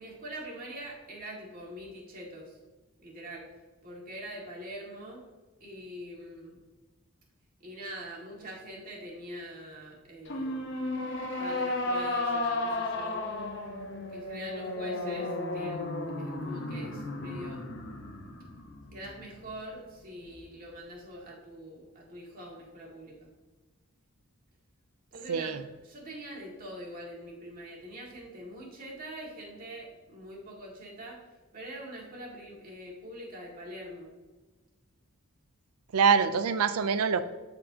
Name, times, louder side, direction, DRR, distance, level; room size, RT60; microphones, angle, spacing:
voice 1, 0.0-2.6 3.0-3.5 3.8-5.2 5.6-6.6 7.6-10.8 11.4-13.2 14.1-15.9 16.2-17.6 18.9-23.3 25.1-25.6 25.8-31.2 31.5-34.1, right 1 dB, 40° right, -3 dB, 2.0 m, -44 dB
sound 1, 10.3-19.6, left 2 dB, 50° left, 0.9 m, -34 dB
voice 2, 25.3-25.6 35.9-37.2, right 6 dB, 80° right, 12 dB, 0.5 m, -25 dB
13.0 x 4.5 x 2.8 m, 1.2 s
head